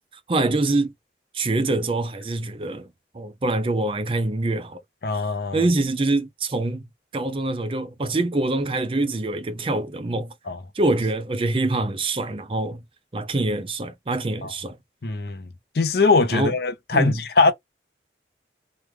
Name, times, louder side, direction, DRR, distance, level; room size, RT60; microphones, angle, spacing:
voice 1, 0.3-0.9 1.3-2.9 3.1-4.8 5.5-6.8 7.1-10.3 10.8-12.8 13.1-14.8 16.3-16.5 16.9-17.2, right 2 dB, 30° right, 0.4 m, -24 dB
voice 2, 5.0-5.6 10.5-10.6 14.4-14.5 15.0-15.4 15.8-17.5, left 3 dB, 65° left, 0.6 m, -21 dB
3.2 x 2.2 x 3.2 m
head